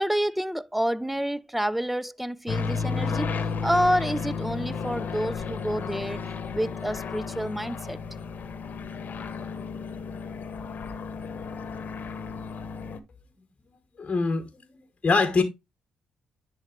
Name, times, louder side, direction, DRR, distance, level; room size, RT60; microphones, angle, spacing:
voice 1, 0.0-3.3 3.6-6.2 6.5-8.0, equal, 5° right, 0.5 m, -28 dB
sound 1, 2.5-13.0, left 5 dB, 55° left, 1.1 m, -33 dB
voice 2, 14.0-14.5 15.0-15.4, left 4 dB, 35° left, 1.2 m, -23 dB
10.0 x 3.9 x 3.2 m
supercardioid pair, 55°, 3 cm